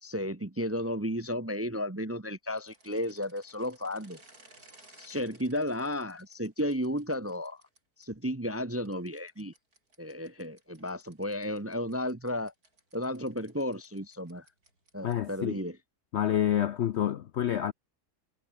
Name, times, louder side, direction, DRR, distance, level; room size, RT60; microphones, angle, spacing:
voice 1, 0.0-4.2 5.0-7.6 8.0-9.5 10.0-12.5 12.9-14.4 14.9-15.8, left 1 dB, 15° right, 0.6 m, -33 dB
sound 1, 2.5-8.1 8.9-15.3, right 2 dB, 65° right, 7.7 m, -60 dB
voice 2, 15.0-15.6 16.1-17.7, left 10 dB, 65° left, 0.7 m, -28 dB
omnidirectional pair, 1.7 m